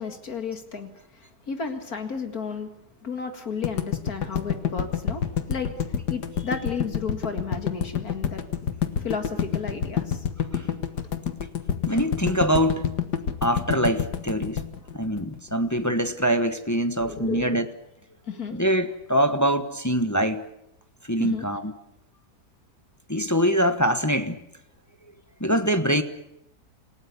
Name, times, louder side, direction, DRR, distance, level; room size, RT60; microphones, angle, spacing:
voice 1, 0.0-2.7 3.0-8.7 9.0-10.2 17.0-17.5 18.3-18.6 21.2-21.5, left 5 dB, 65° left, 2.5 m, -33 dB
sound 1, 3.6-15.8, left 8 dB, 85° left, 2.0 m, -27 dB
voice 2, 11.9-12.9 13.4-14.6 14.9-17.7 18.5-20.5 21.0-21.7 23.1-24.4 25.4-26.0, equal, 10° left, 1.1 m, -24 dB
28.0 x 18.0 x 8.4 m
omnidirectional pair, 1.7 m